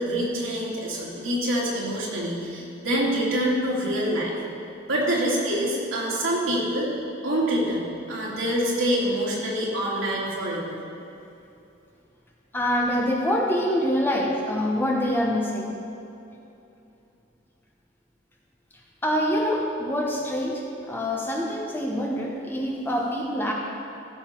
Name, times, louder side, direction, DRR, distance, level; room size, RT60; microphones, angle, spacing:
voice 1, 0.0-4.3 4.8-6.9 7.2-10.8, equal, 85° right, -5 dB, 2.8 m, -26 dB
voice 2, 12.5-15.7 19.0-23.5, equal, 10° left, -2 dB, 1.0 m, -25 dB
15.0 x 7.0 x 4.5 m, 2.7 s
head